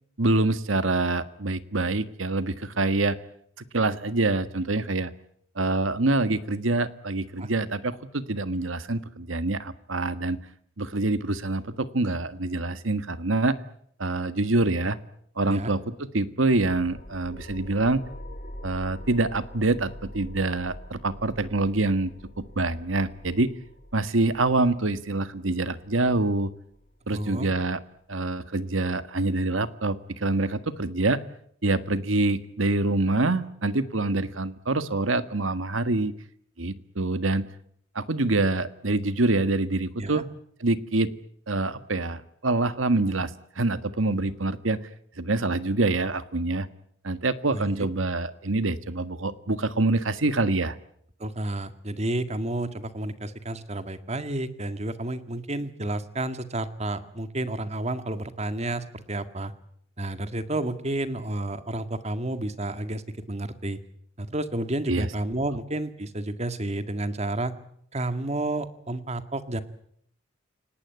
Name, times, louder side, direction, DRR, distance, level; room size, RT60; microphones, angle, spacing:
voice 1, 0.2-3.2 3.7-5.1 5.5-10.4 10.8-13.6 14.0-15.0 15.4-18.0 18.6-22.1 22.4-23.5 23.9-26.5 27.1-27.8 28.1-31.2 31.6-36.1 36.6-37.5 37.9-40.2 40.6-41.1 41.5-43.3 43.5-44.8 45.2-46.7 47.0-50.8 64.9-65.1, right 2 dB, 90° right, 12 dB, 1.6 m, -25 dB
sound 1, 16.5-27.6, equal, 40° left, 2.9 m, -44 dB
voice 2, 27.1-27.5 40.0-40.2 47.5-47.9 51.2-59.5 60.0-63.0 63.3-63.8 64.2-67.5 67.9-69.6, right 1 dB, 35° right, 10 dB, 1.9 m, -31 dB
29.0 x 18.5 x 9.5 m, 0.70 s
head